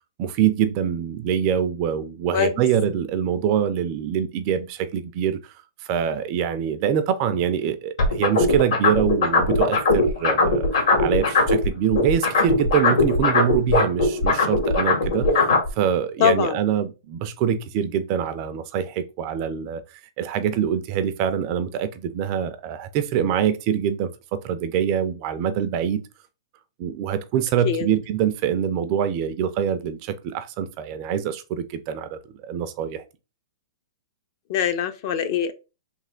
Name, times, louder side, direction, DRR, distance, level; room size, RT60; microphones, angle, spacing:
voice 1, 0.2-5.5 5.8-15.5 15.8-19.8 20.2-26.0 26.8-33.0, right 9 dB, 30° right, 0.4 m, -24 dB
sound 1, 8.0-11.7 11.9-15.7, left 3 dB, 70° left, 1.9 m, -19 dB
voice 2, 16.2-16.6 27.6-27.9 34.5-35.5, left 9 dB, 40° left, 0.5 m, -22 dB
3.3 x 2.9 x 3.7 m
hypercardioid pair, 165°, 3 cm